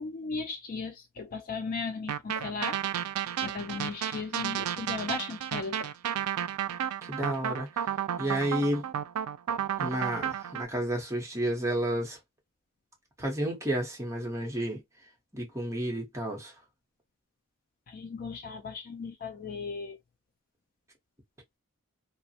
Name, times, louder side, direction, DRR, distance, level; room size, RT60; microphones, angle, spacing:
voice 1, 0.0-2.8 3.4-5.9 9.5-9.6 17.9-20.0, left 4 dB, 40° left, 0.3 m, -36 dB
sound 1, 2.1-10.6, right 10 dB, 85° right, 0.3 m, -32 dB
voice 2, 7.0-7.9 8.2-8.9 9.8-12.2 13.2-14.8 15.3-16.5, right 1 dB, 15° right, 0.8 m, -31 dB
2.4 x 2.0 x 2.6 m
head